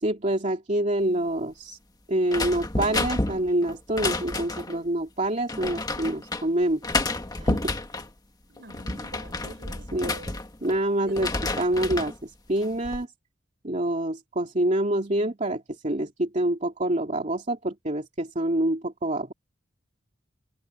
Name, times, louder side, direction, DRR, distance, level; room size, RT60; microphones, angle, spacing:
voice 1, 0.0-1.8 2.1-6.8 7.4-7.7 9.9-10.1 10.6-11.3 11.6-13.1 13.6-19.3, right 1 dB, 40° right, 2.6 m, -26 dB
sound 1, 2.3-4.8 5.5-6.4 6.8-8.1 8.6-10.8 11.1-12.2 12.6-13.0, left 2 dB, 20° left, 1.5 m, -30 dB
voice 2, 8.5-10.4 11.1-11.3, right 2 dB, 60° right, 5.5 m, -44 dB
head